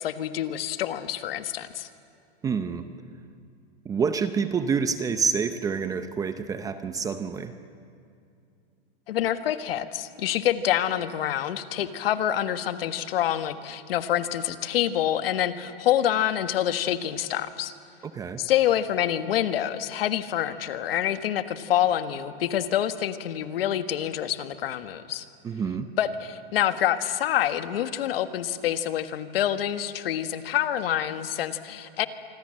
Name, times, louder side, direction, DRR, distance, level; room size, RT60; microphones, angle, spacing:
voice 1, 0.0-1.9 9.1-17.7 18.4-25.2 26.0-32.1, left 11 dB, 70° left, 9 dB, 1.6 m, -27 dB
voice 2, 2.4-2.9 3.8-7.6 18.1-18.4 25.4-25.9, right 6 dB, 10° right, 10 dB, 0.6 m, -27 dB
26.0 x 25.0 x 7.7 m, 2.5 s
supercardioid pair, 155°, 30 cm